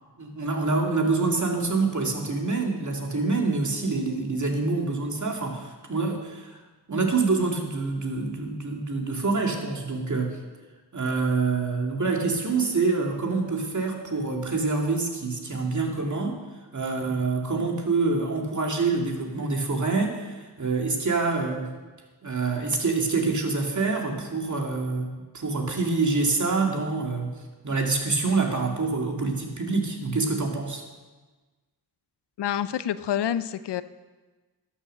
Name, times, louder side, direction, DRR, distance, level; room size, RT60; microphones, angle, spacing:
voice 1, 0.2-6.6 6.9-10.4 10.9-16.4 16.7-21.7 22.2-27.3 27.6-30.8, right 3 dB, 45° right, 2 dB, 2.3 m, -26 dB
voice 2, 32.4-33.8, left 10 dB, 85° left, 14 dB, 0.6 m, -27 dB
12.5 x 7.1 x 6.6 m, 1.3 s
cardioid pair, 50°, 40 cm